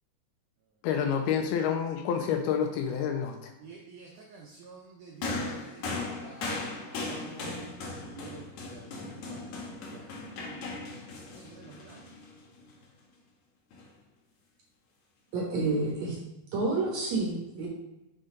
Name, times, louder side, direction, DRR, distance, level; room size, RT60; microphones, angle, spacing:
voice 1, 0.8-3.5, left 7 dB, 80° left, 2.5 m, -28 dB
voice 2, 3.6-9.5 9.9-10.1 10.5-10.8 11.4-12.0, right 4 dB, 80° right, 1.8 m, -50 dB
sound 1, 5.2-12.7 13.7-13.9, left 3 dB, 65° left, 2.0 m, -38 dB
voice 3, 15.3-16.2 16.5-17.7, right 3 dB, 60° right, 2.0 m, -29 dB
6.5 x 5.5 x 3.8 m
omnidirectional pair, 4.7 m